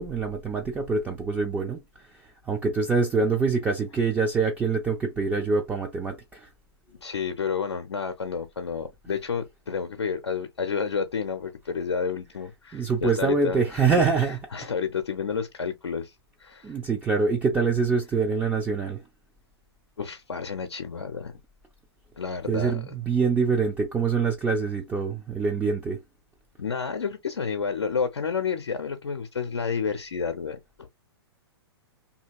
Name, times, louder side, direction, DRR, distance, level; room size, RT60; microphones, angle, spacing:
voice 1, 0.0-1.8 2.5-6.5 12.7-14.4 16.6-19.0 22.5-26.0, right 4 dB, 10° right, 0.4 m, -25 dB
voice 2, 7.0-16.8 20.0-21.4 22.2-22.9 26.6-30.9, left 6 dB, 70° left, 0.5 m, -30 dB
2.8 x 2.7 x 2.6 m
figure-of-eight pair, 110°, 14 cm